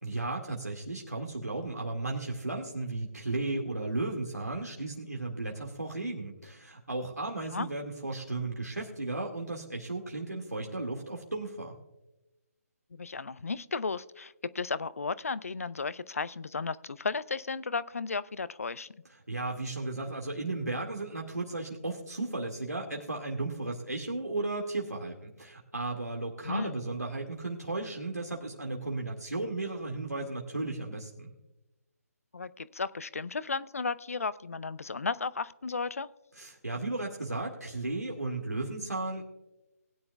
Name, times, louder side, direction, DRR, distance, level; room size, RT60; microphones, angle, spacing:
voice 1, 0.0-11.7 19.3-31.3 36.4-39.2, right 2 dB, 85° right, 0 dB, 2.0 m, -35 dB
voice 2, 12.9-18.9 26.4-26.7 32.3-36.1, left 4 dB, 60° left, 17 dB, 0.5 m, -34 dB
19.5 x 9.7 x 2.3 m, 0.97 s
figure-of-eight pair, 145°, 9 cm